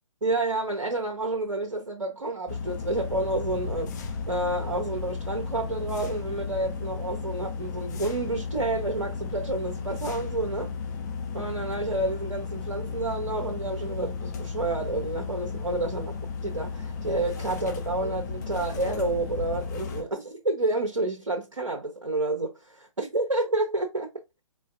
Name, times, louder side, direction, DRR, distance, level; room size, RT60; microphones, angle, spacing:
voice 1, 0.2-10.7 11.3-16.1 16.4-24.1, right 2 dB, 75° right, 0.8 m, -29 dB
sound 1, 2.5-20.0, left 5 dB, 30° left, 0.6 m, -34 dB
4.3 x 3.2 x 2.3 m
figure-of-eight pair, 130°, 17 cm